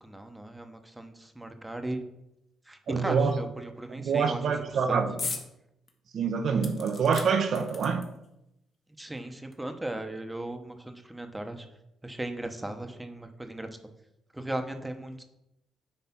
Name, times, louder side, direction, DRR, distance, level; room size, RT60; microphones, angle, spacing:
voice 1, 0.0-2.0 2.7-4.4 4.9-5.0 9.0-11.7 12.0-13.7 14.3-15.2, right 1 dB, 10° right, 1.0 m, -37 dB
voice 2, 2.9-3.4 3.9-5.3 6.1-8.1, right 5 dB, 60° right, 0.8 m, -26 dB
sound 1, 5.2-5.5 5.9-6.0 6.6-8.3 9.2-9.3 9.5-9.6, left 4 dB, 45° left, 1.4 m, -38 dB
9.4 x 3.3 x 5.9 m
cardioid pair, 90°, 0 cm